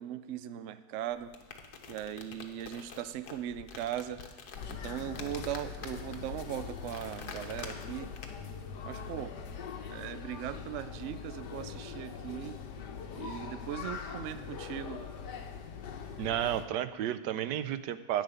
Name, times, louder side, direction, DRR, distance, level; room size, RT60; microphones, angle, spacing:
voice 1, 0.0-1.3 1.9-4.2 4.7-8.1 8.8-9.3 9.9-12.6 13.2-15.0, right 11 dB, 65° right, 12 dB, 0.7 m, -39 dB
sound 1, 1.1-8.6, left 5 dB, 65° left, 1.5 m, -48 dB
sound 2, 4.6-16.7, left 6 dB, 85° left, 1.6 m, -42 dB
voice 2, 16.2-18.2, right 11 dB, 85° right, 13 dB, 1.3 m, -32 dB
10.5 x 6.3 x 8.9 m, 1.2 s
omnidirectional pair, 1.8 m